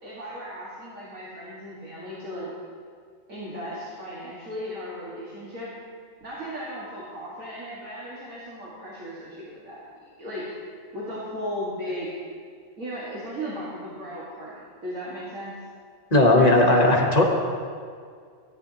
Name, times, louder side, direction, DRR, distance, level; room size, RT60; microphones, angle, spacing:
voice 1, 0.0-2.5 3.3-5.7 6.2-9.8 10.2-10.5 10.9-12.1 12.8-15.5 16.3-16.8, equal, 80° right, -8 dB, 2.1 m, -36 dB
voice 2, 16.1-17.2, left 2 dB, 30° left, 0 dB, 1.1 m, -17 dB
14.0 x 9.6 x 2.8 m, 2.1 s
omnidirectional pair, 1.4 m